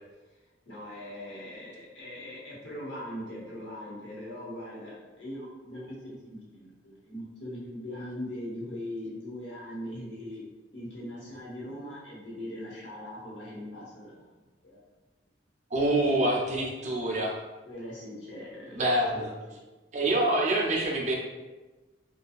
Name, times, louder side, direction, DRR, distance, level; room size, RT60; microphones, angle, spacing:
voice 1, 0.7-6.0 6.5-10.4 10.7-14.3 14.6-14.8 17.7-18.8 19.1-19.3, left 1 dB, 85° left, -6 dB, 1.0 m, -40 dB
voice 2, 15.7-17.4 18.7-19.3 19.9-21.1, right 1 dB, 40° right, -1 dB, 0.5 m, -26 dB
2.7 x 2.2 x 2.4 m, 1.2 s
head